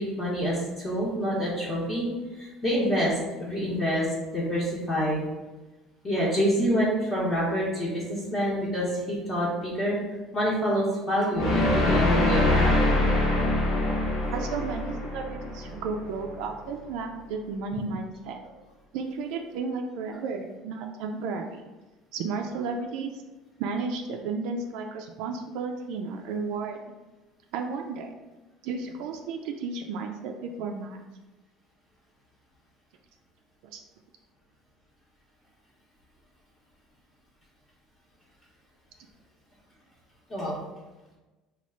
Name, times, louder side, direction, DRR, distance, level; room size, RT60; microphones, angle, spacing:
voice 1, 0.0-2.1 2.4-4.1 4.3-5.2 6.0-10.0 10.3-12.8 40.3-40.6, equal, 25° left, -7 dB, 0.8 m, -27 dB
sound 1, 11.3-16.4, left 1 dB, 60° left, 0.9 m, -24 dB
voice 2, 14.3-18.4 18.9-21.7 22.1-23.2 23.6-26.8 27.5-28.1 28.6-31.0 33.6-33.8, right 4 dB, 75° right, 3 dB, 0.3 m, -33 dB
3.0 x 2.3 x 4.3 m, 1.2 s
cardioid pair, 130°, 0 cm